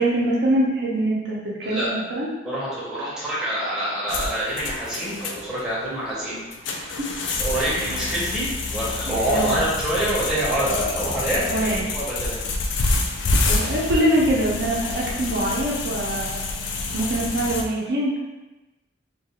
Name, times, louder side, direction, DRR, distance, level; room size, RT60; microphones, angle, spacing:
voice 1, 0.0-2.3 6.8-7.1 7.7-7.9 9.1-9.6 11.5-11.9 13.4-16.4 16.9-18.2, right 1 dB, 65° right, -4 dB, 0.6 m, -24 dB
voice 2, 2.4-6.8 7.4-12.4 12.7-12.9, right 1 dB, 5° right, -10 dB, 0.7 m, -26 dB
sound 1, 4.1-17.6, left 3 dB, 75° left, 0.3 m, -27 dB
2.3 x 2.3 x 2.8 m, 1.1 s
head